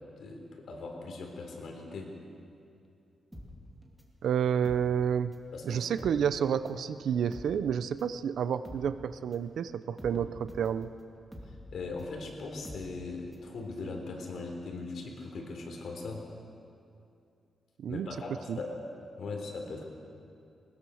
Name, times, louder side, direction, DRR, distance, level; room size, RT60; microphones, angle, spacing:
voice 1, 0.2-2.1 5.5-5.9 11.7-16.3 17.9-18.8 19.2-19.8, left 3 dB, 65° left, 1 dB, 3.8 m, -39 dB
sound 1, 3.3-5.5 5.8-13.5 13.8-13.9, left 1 dB, 5° right, 2.4 m, -48 dB
voice 2, 4.2-5.3 5.6-10.9 17.8-18.1 18.5-18.6, right 8 dB, 80° right, 13 dB, 0.7 m, -30 dB
20.5 x 20.5 x 6.4 m, 2.6 s
wide cardioid pair, 155°, 0 cm